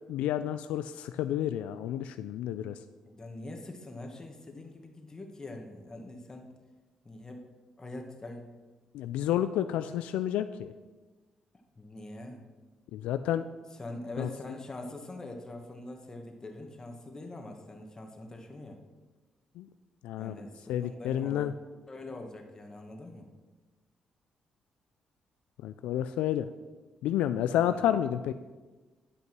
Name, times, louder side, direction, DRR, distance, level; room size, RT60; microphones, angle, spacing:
voice 1, 0.1-2.8 8.9-10.7 12.9-13.4 14.2-14.3 19.6-19.7 20.0-20.4 20.7-21.5 25.6-26.5 27.0-28.3, left 11 dB, 90° left, 11 dB, 0.3 m, -30 dB
voice 2, 3.1-6.5 7.1-7.4 7.8-8.5 11.8-12.4 13.7-18.8 20.2-21.5 21.9-23.3 27.6-27.8, left 2 dB, 30° left, 2 dB, 1.9 m, -43 dB
11.0 x 5.4 x 6.1 m, 1.3 s
supercardioid pair, 60°, 2 cm